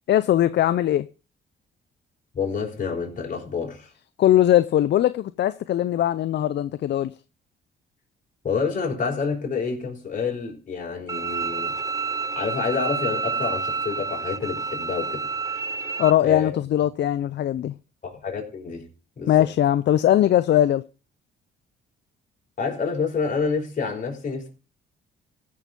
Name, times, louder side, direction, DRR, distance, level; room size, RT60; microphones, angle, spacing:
voice 1, 0.1-1.1 4.2-7.1 16.0-17.7 19.3-20.8, left 12 dB, 60° left, 0.6 m, -20 dB
voice 2, 2.3-3.9 8.4-11.8 12.4-15.3 16.2-16.5 18.0-18.9 19.2-19.5 22.6-24.5, left 5 dB, 40° left, 5.2 m, -28 dB
Bowed string instrument, 11.1-16.1, right 4 dB, 15° right, 0.5 m, -29 dB
16.0 x 6.4 x 5.3 m
cardioid pair, 90°, 20 cm